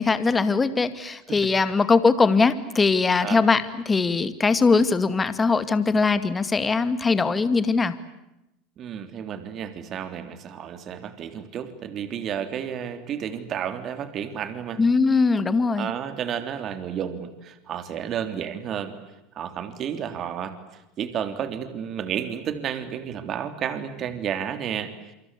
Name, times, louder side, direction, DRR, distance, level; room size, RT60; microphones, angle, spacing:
voice 1, 0.0-8.0 14.8-15.9, left 4 dB, 20° left, 12 dB, 2.2 m, -21 dB
voice 2, 8.8-14.8 15.8-19.0 19.3-20.6 21.0-24.9, right 8 dB, 40° right, 10 dB, 3.3 m, -31 dB
29.0 x 24.5 x 8.3 m, 0.91 s
supercardioid pair, 110°, 0 cm